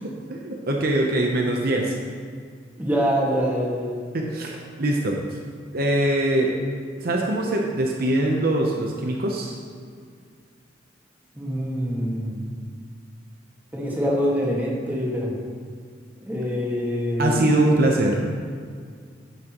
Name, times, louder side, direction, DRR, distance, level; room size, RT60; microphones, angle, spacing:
voice 1, 0.3-2.0 4.1-5.4 5.7-6.5 7.0-9.6 17.2-18.3, right 1 dB, 55° right, 0 dB, 0.8 m, -22 dB
voice 2, 2.8-4.0 11.3-12.4 13.7-15.4 16.3-17.4, equal, 10° right, -4 dB, 1.7 m, -25 dB
10.0 x 8.6 x 3.0 m, 2.1 s
head